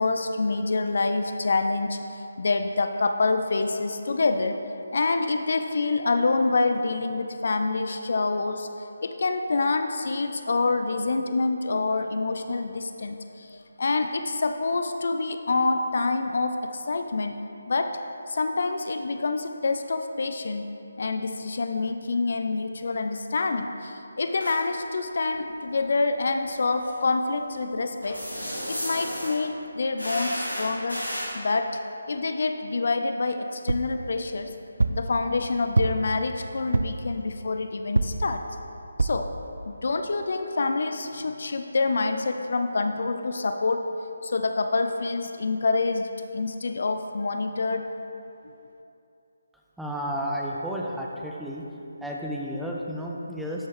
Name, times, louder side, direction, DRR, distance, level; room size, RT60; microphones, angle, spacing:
voice 1, 0.0-4.6 4.9-17.3 17.7-18.0 18.3-20.6 21.0-28.2 28.7-31.1 31.3-31.8 32.1-34.5 34.9-38.4 39.0-39.3 39.7-47.9, left 3 dB, 50° left, 7 dB, 0.4 m, -27 dB
sound 1, 24.3-24.6 26.8-26.9 28.0-29.4 30.0-31.3, equal, 85° left, 1.8 m, -33 dB
sound 2, 33.7-34.0 34.8-35.1 35.8-36.2 36.7-37.1 38.0-38.3 39.0-39.3 39.9-40.0 40.2-40.3, right 3 dB, 65° right, 0.3 m, -25 dB
voice 2, 49.8-51.7 52.0-53.7, equal, ahead, -3 dB, 0.6 m, -32 dB
12.5 x 5.5 x 3.3 m, 2.7 s
figure-of-eight pair, 150°, 0 cm